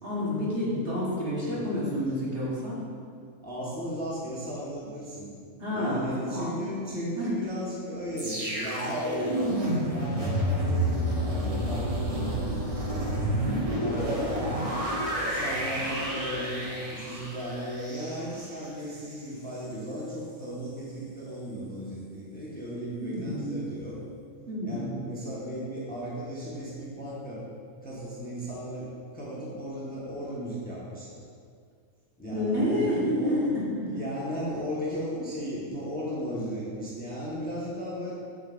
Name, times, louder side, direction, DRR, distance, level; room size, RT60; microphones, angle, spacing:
voice 1, 0.0-2.8 5.6-6.6 7.2-7.3 13.4-13.8 23.0-23.7 24.5-25.0 32.3-33.9, left 1 dB, 50° right, -7 dB, 1.5 m, -29 dB
voice 2, 3.4-5.3 5.7-13.1 13.7-14.5 15.2-24.0 24.6-27.4 27.8-31.2 32.2-32.9 33.2-33.5 33.9-38.1, equal, 5° left, -7 dB, 1.0 m, -36 dB
sound 1, 8.2-19.3 19.6-19.8, equal, 30° right, 1.0 m, -30 dB
7.2 x 6.2 x 2.5 m, 2.2 s
omnidirectional pair, 1.3 m